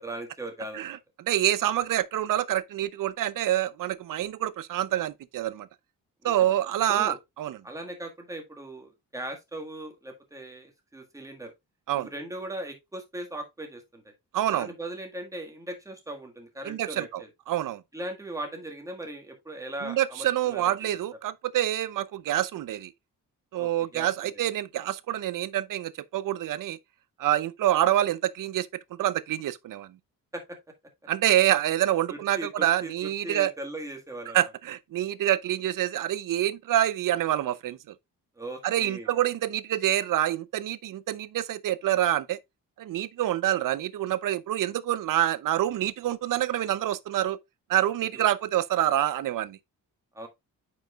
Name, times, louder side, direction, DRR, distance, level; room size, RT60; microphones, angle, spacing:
voice 1, 0.0-1.0 6.2-6.3 6.9-7.2 7.6-11.5 11.9-14.1 14.5-17.3 17.9-20.9 23.6-24.3 30.3-30.6 32.1-34.4 38.4-39.1 48.1-48.3 50.1-50.3, right 1 dB, 10° right, 1.7 m, -39 dB
voice 2, 0.7-5.7 6.2-7.6 11.9-12.1 14.3-14.7 16.6-17.8 19.8-22.9 23.5-26.8 27.2-30.0 31.1-33.5 34.3-37.8 38.6-42.4 42.8-47.4 47.7-49.6, right 12 dB, 70° right, 0.6 m, -27 dB
9.0 x 5.3 x 2.3 m
wide cardioid pair, 150°, 34 cm